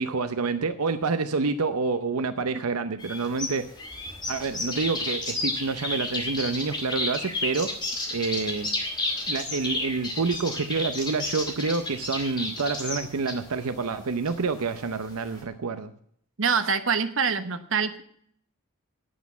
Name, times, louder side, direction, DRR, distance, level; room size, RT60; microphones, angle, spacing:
voice 1, 0.0-3.7 4.3-7.8 8.1-8.7 9.3-15.9, right 4 dB, 85° right, 9 dB, 0.7 m, -28 dB
sound 1, 3.0-15.4, left 2 dB, 20° left, 2.2 m, -32 dB
voice 2, 16.4-18.0, right 6 dB, 60° right, 9 dB, 1.0 m, -25 dB
9.4 x 8.1 x 8.2 m, 0.65 s
head